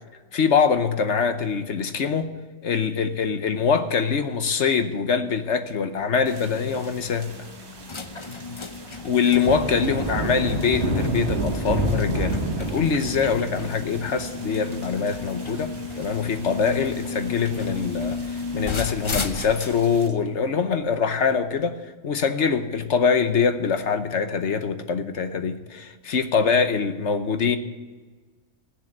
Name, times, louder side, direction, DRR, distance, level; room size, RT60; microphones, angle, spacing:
voice 1, 0.3-2.3 2.6-7.5 9.0-21.8 22.0-27.6, left 6 dB, 55° left, 8 dB, 1.1 m, -24 dB
sound 1, 5.9-21.6, left 4 dB, 35° left, 0.5 m, -35 dB
sound 2, 6.3-20.1, right 2 dB, 50° right, 1.7 m, -32 dB
16.5 x 6.9 x 9.0 m, 1.4 s
omnidirectional pair, 1.5 m